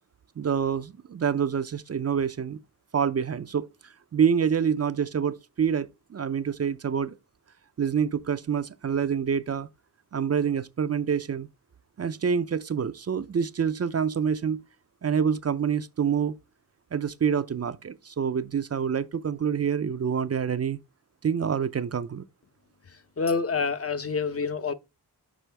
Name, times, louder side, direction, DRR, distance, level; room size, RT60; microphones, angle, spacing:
voice 1, 0.4-2.6 2.9-7.2 7.8-9.7 10.1-11.5 12.0-14.6 15.0-16.4 16.9-20.8 21.2-22.2, right 7 dB, 40° right, 0.4 m, -27 dB
voice 2, 23.2-24.7, left 5 dB, 35° left, 0.6 m, -27 dB
6.2 x 5.0 x 3.3 m
wide cardioid pair, 90°, 41 cm